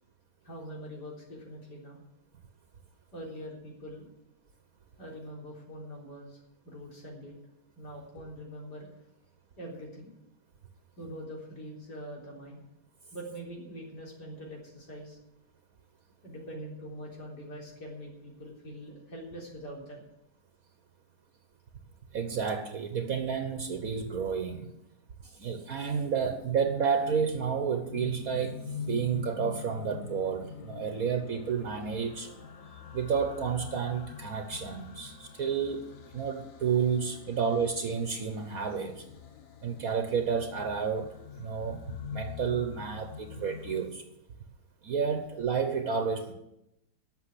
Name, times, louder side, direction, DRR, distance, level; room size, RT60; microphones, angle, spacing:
voice 1, 0.4-2.0 3.1-4.1 5.0-7.4 7.8-8.9 9.6-10.1 11.0-12.6 13.1-15.2 16.2-20.0, equal, 90° left, -2 dB, 4.3 m, -43 dB
voice 2, 22.1-24.7 25.2-32.3 32.9-35.9 36.1-39.0 39.6-44.0 44.8-46.3, right 6 dB, 60° right, 7 dB, 1.5 m, -31 dB
sound 1, 26.1-43.9, left 6 dB, 55° left, 1.4 m, -45 dB
12.0 x 7.4 x 9.9 m, 0.85 s
omnidirectional pair, 1.8 m